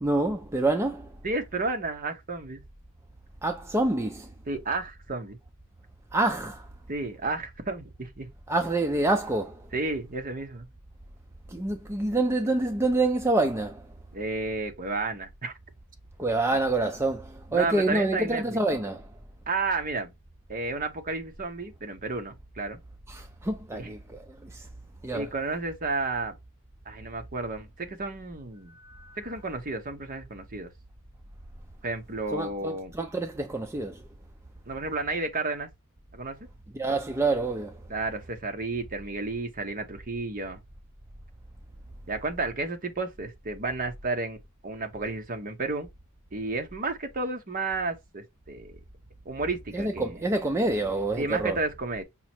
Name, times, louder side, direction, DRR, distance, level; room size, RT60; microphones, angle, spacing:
voice 1, 0.0-1.2 3.4-4.3 6.1-6.7 8.5-9.7 11.5-13.9 16.2-19.1 23.1-24.7 25.0-25.3 28.7-29.2 32.3-34.0 36.7-37.8 49.7-51.6, right 2 dB, 10° right, 0.4 m, -27 dB
voice 2, 1.2-2.6 4.5-5.4 6.9-8.3 9.7-10.7 14.1-15.5 17.5-18.6 19.5-20.1 20.5-22.8 23.7-23.9 25.1-26.4 26.9-28.7 29.2-30.7 31.8-32.9 34.7-35.7 36.1-36.4 37.9-40.6 42.1-45.9 46.3-48.8 49.3-50.1 51.2-52.0, right 3 dB, 40° right, 0.9 m, -32 dB
5.6 x 2.1 x 4.3 m
head